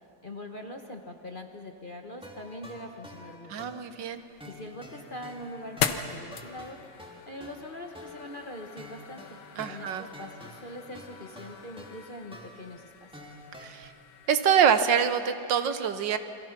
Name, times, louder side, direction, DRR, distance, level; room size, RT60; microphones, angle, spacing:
voice 1, 0.2-3.7 4.4-9.4 9.7-13.4, left 1 dB, 35° left, 4 dB, 1.1 m, -43 dB
sound 1, 2.2-13.7, equal, 5° right, 2.2 m, -49 dB
voice 2, 3.5-4.2 9.6-10.0 13.6-13.9 14.3-16.2, right 7 dB, 70° right, 10 dB, 1.6 m, -25 dB
sound 2, 4.1-15.1, left 8 dB, 65° left, 1.6 m, -40 dB
29.0 x 22.5 x 5.9 m, 2.7 s
omnidirectional pair, 2.1 m